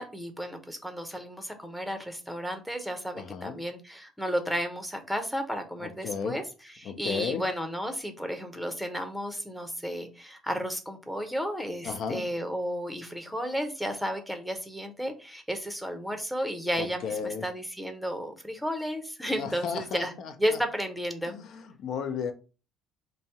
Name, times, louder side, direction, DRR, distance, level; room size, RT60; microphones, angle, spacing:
voice 1, 0.0-6.4 6.8-20.1 20.4-21.3, equal, ahead, 0.7 m, -33 dB
voice 2, 3.2-3.5 5.8-6.4 6.8-7.4 11.8-12.3 16.8-17.4 19.3-20.6 21.3-22.3, left 6 dB, 60° left, 0.4 m, -34 dB
2.6 x 2.0 x 3.5 m
figure-of-eight pair, 50°, 0 cm